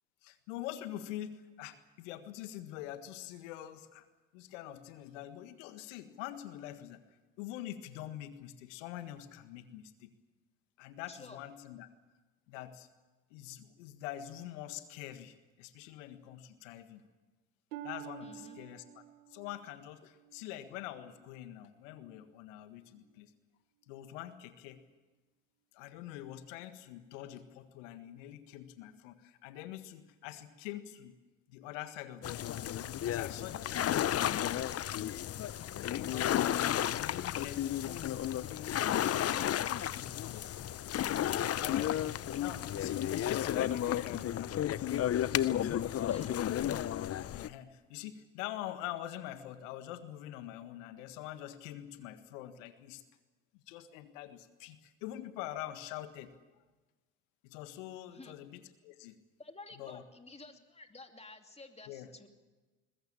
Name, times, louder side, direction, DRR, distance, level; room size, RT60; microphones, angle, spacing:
voice 1, 0.2-4.1 4.3-7.0 7.4-10.1 10.8-11.9 12.5-12.9 13.3-17.0 17.8-19.0 19.3-23.3 23.9-24.8 25.7-31.1 31.5-32.7 33.0-35.0 35.9-38.2 39.1-39.6 40.0-40.5 41.3-44.9 45.4-45.9 47.3-53.0 53.5-56.3 57.4-59.2 59.8-60.0 61.9-62.1, left 13 dB, 75° left, 10 dB, 1.7 m, -45 dB
voice 2, 11.1-11.5 18.2-18.6 46.0-46.5 58.1-58.4 59.4-62.3, left 2 dB, 15° left, 5 dB, 2.8 m, -52 dB
Harp, 17.7-21.4 22.0-22.4 23.0-23.1, right 15 dB, 75° right, 1.5 m, -50 dB
sound 1, 32.2-47.5, left 11 dB, 40° left, 0.8 m, -33 dB
21.0 x 21.0 x 7.4 m, 1.2 s
hypercardioid pair, 60°, 37 cm